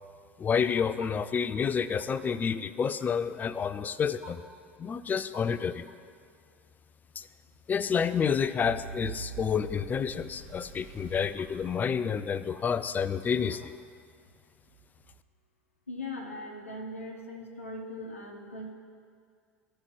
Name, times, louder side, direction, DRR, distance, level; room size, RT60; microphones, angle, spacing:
voice 1, 0.4-4.4 4.8-5.9 7.2-7.3 7.7-13.7, left 6 dB, 25° left, 14 dB, 0.4 m, -29 dB
sound 1, 8.6-12.7, right 5 dB, 55° right, 1.2 m, -44 dB
voice 2, 15.9-18.7, left 1 dB, 85° left, 0 dB, 0.9 m, -40 dB
15.5 x 5.5 x 3.1 m, 2.2 s
figure-of-eight pair, 70°, 7 cm